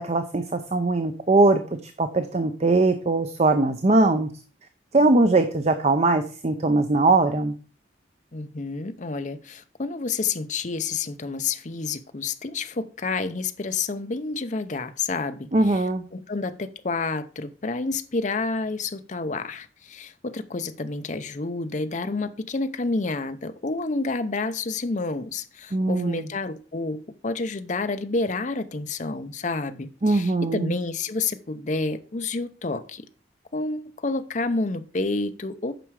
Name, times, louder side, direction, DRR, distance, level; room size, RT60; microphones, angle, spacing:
voice 1, 0.0-4.3 4.9-7.5 15.5-16.0 25.7-26.2 30.0-30.7, right 2 dB, 35° right, 0.6 m, -21 dB
voice 2, 8.3-15.8 16.1-33.1 33.5-35.7, left 3 dB, 40° left, 0.6 m, -29 dB
9.0 x 6.0 x 4.8 m
head